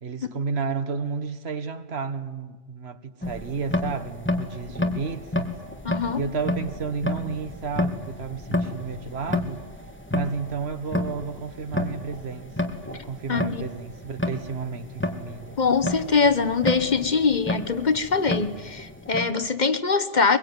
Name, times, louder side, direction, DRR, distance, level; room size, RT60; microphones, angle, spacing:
voice 1, 0.0-5.6 6.2-9.6 10.1-15.6, right 5 dB, 80° right, 1.5 m, -32 dB
sound 1, 3.2-19.3, left 1 dB, 10° left, 2.0 m, -31 dB
voice 2, 5.8-6.2 13.3-13.7 15.6-20.4, left 4 dB, 45° left, 1.2 m, -23 dB
23.0 x 22.5 x 9.6 m
omnidirectional pair, 1.1 m